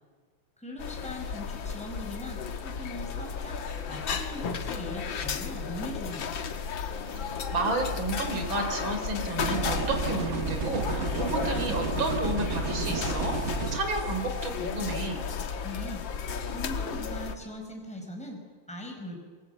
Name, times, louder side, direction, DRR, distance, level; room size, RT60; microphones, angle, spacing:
voice 1, 0.6-3.6 3.9-6.5 15.6-16.0 16.5-19.2, left 1 dB, 5° left, 1 dB, 5.0 m, -40 dB
sound 1, 0.8-17.4, left 6 dB, 60° left, 2.1 m, -34 dB
voice 2, 7.5-13.3 13.7-15.2, right 2 dB, 65° right, 4 dB, 4.3 m, -31 dB
sound 2, 9.4-13.8, right 4 dB, 40° right, 1.2 m, -32 dB
27.0 x 22.0 x 8.1 m, 1.6 s
omnidirectional pair, 2.4 m